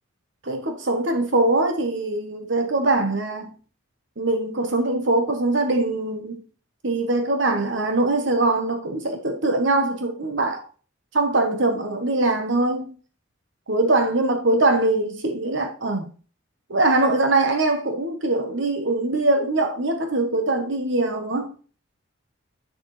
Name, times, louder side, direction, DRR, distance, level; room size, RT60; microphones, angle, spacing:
voice 1, 0.4-3.6 4.2-6.4 6.8-10.6 11.1-12.9 13.7-16.1 16.7-21.5, right 2 dB, 60° right, 1.2 m, -22 dB
9.4 x 6.7 x 3.2 m
head